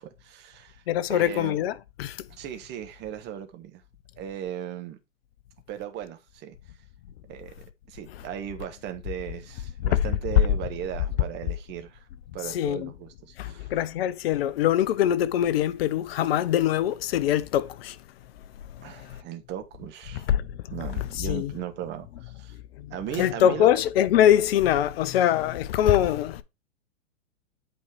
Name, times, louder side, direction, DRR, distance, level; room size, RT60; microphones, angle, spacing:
voice 1, 0.0-0.8 1.1-1.6 2.3-3.8 4.2-5.0 5.7-6.6 7.3-7.5 7.9-12.1 12.3-13.7 18.8-20.3 20.7-22.5 22.9-23.7, right 10 dB, 25° right, 1.3 m, -37 dB
voice 2, 0.9-2.3 8.1-8.2 9.8-10.1 12.4-12.9 13.4-19.2 20.1-21.5 22.5-26.4, left 11 dB, 50° left, 0.8 m, -24 dB
8.4 x 4.4 x 4.6 m
hypercardioid pair, 115°, 39 cm